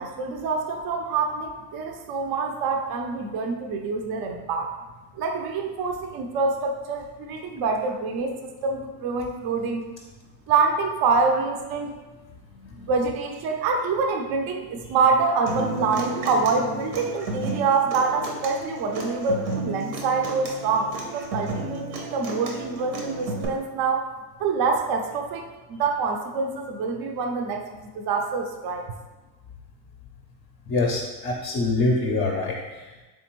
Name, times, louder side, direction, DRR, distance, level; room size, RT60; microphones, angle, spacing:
voice 1, 0.0-4.7 5.2-9.8 10.5-11.9 12.9-24.1 24.4-28.9, right 4 dB, 50° right, 3 dB, 0.5 m, -26 dB
Human voice / Acoustic guitar, 15.5-23.4, right 2 dB, 80° right, 1.0 m, -33 dB
voice 2, 30.7-32.5, left 2 dB, 30° left, -1 dB, 0.5 m, -24 dB
3.4 x 3.4 x 3.0 m, 1.2 s
supercardioid pair, 90°, 48 cm